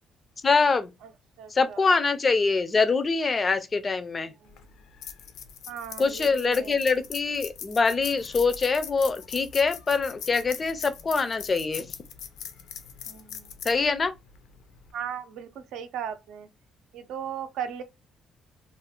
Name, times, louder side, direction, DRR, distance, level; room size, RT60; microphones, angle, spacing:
voice 1, 0.4-0.9 1.5-4.3 6.0-11.9 13.7-14.1, left 4 dB, 25° left, 0.4 m, -24 dB
voice 2, 1.4-1.9 4.4-4.7 5.7-6.8 13.1-13.5 14.9-16.5 16.9-17.8, right 8 dB, 85° right, 0.5 m, -37 dB
sound 1, 4.5-14.9, left 8 dB, 80° left, 0.5 m, -41 dB
2.4 x 2.4 x 3.5 m
cardioid pair, 165°, 0 cm